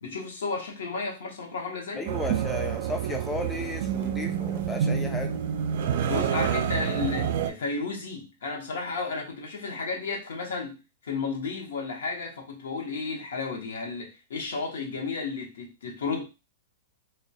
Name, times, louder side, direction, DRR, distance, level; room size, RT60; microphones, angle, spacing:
voice 1, 0.0-2.1 6.1-16.2, left 4 dB, 80° left, 0.7 m, -33 dB
voice 2, 2.0-5.4, left 2 dB, 10° left, 0.4 m, -34 dB
sound 1, 2.1-7.5, right 8 dB, 60° right, 0.3 m, -28 dB
2.2 x 2.1 x 2.6 m
hypercardioid pair, 120°, 0 cm